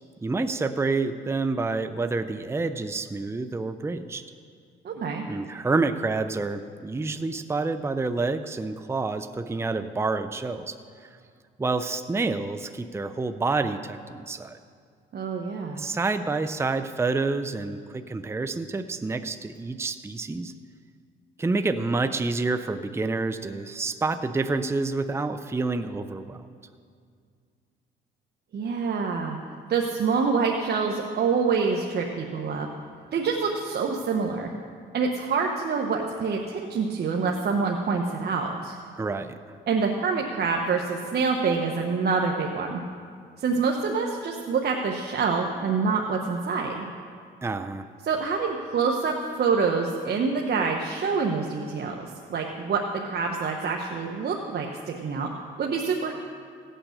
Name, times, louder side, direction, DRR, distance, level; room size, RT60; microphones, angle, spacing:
voice 1, 0.2-4.2 5.3-10.8 11.6-14.6 15.7-20.5 21.4-26.4 39.0-39.6 47.4-47.9, right 3 dB, 15° right, 9 dB, 0.5 m, -28 dB
voice 2, 4.8-5.2 15.1-15.9 28.5-29.4 29.7-32.7 33.1-34.5 34.9-38.8 39.7-42.8 43.4-46.9 48.0-52.8 53.1-55.3 55.6-56.1, right 5 dB, 55° right, 1 dB, 1.1 m, -26 dB
16.5 x 9.0 x 6.6 m, 2.2 s
cardioid pair, 90°, 20 cm